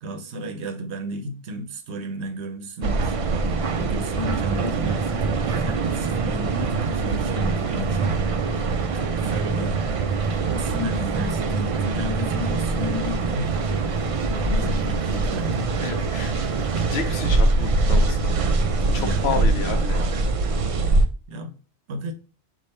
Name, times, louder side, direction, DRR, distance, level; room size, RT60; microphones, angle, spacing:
voice 1, 0.0-3.2 3.7-8.2 8.9-9.8 10.5-13.5 14.3-15.7 18.8-19.6 21.3-21.6 21.9-22.1, left 1 dB, 85° right, 1.0 m, -33 dB
sound 1, 2.8-21.1, right 3 dB, 60° right, 0.3 m, -23 dB
sound 2, 3.4-17.8, left 2 dB, 30° left, 0.8 m, -39 dB
voice 2, 15.8-16.3 16.9-18.4 18.9-20.0, left 5 dB, 70° left, 1.0 m, -30 dB
5.0 x 2.5 x 4.1 m
omnidirectional pair, 1.1 m